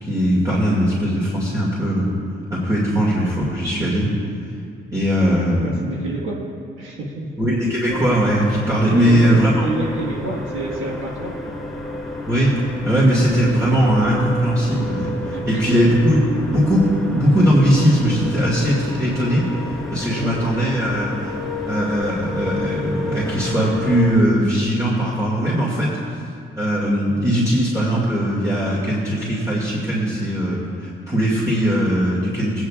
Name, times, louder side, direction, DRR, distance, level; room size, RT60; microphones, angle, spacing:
voice 1, 0.0-2.1 2.5-4.1 4.9-5.7 7.4-9.7 12.3-16.2 16.5-19.5 19.9-21.4 21.7-26.2 26.6-32.6, equal, 15° right, -7 dB, 2.3 m, -19 dB
voice 2, 5.6-6.5 6.8-7.4 8.9-11.6 15.3-15.5 20.1-20.4, right 2 dB, 85° right, -2 dB, 1.6 m, -28 dB
sound 1, 7.9-24.2, left 2 dB, ahead, 1.3 m, -30 dB
18.0 x 9.3 x 2.5 m, 2.4 s
cardioid pair, 90°, 20 cm